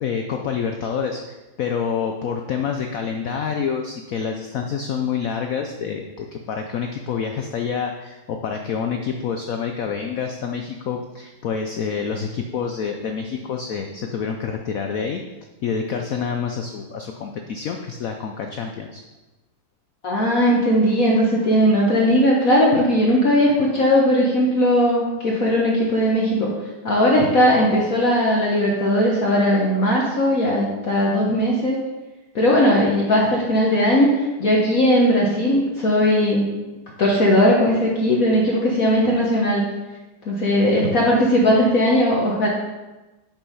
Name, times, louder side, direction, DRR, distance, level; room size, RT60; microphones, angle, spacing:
voice 1, 0.0-15.2 15.6-19.0, left 6 dB, 80° left, 4 dB, 0.7 m, -27 dB
voice 2, 20.0-26.5 26.8-31.8 32.3-34.1 34.4-36.4 37.0-39.6 40.3-42.5, equal, 50° left, -3 dB, 1.4 m, -18 dB
7.4 x 5.5 x 5.5 m, 1.1 s
omnidirectional pair, 2.2 m